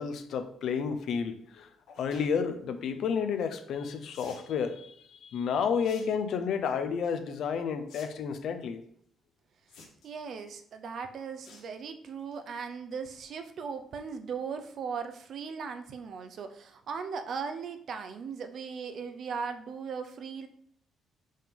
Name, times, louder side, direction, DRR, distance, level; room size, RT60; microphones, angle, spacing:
voice 1, 0.0-1.7 2.0-8.8, left 6 dB, 65° left, 9 dB, 0.7 m, -31 dB
sound 1, 1.9-2.3 4.1-4.5 5.8-6.1 6.4-6.8 7.9-8.0 8.3-8.4 9.7-10.2 11.4-11.7 12.1-12.3 12.7-12.8 13.0-13.1, left 4 dB, 85° left, 1.6 m, -51 dB
voice 2, 10.0-20.5, right 5 dB, 55° right, 8 dB, 0.7 m, -38 dB
5.3 x 3.8 x 5.2 m, 0.63 s
cardioid pair, 120°, 0 cm